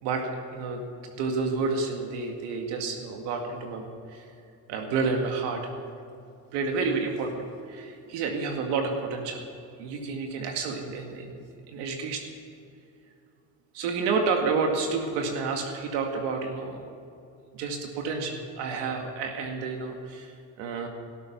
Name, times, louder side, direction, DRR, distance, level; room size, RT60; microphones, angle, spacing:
voice 1, 0.0-4.3 4.7-5.6 6.5-9.4 9.8-12.2 13.7-16.9 17.5-20.3 20.6-20.9, right 4 dB, 80° right, 3 dB, 2.1 m, -30 dB
18.0 x 13.0 x 5.9 m, 2.5 s
supercardioid pair, 100°, 40 cm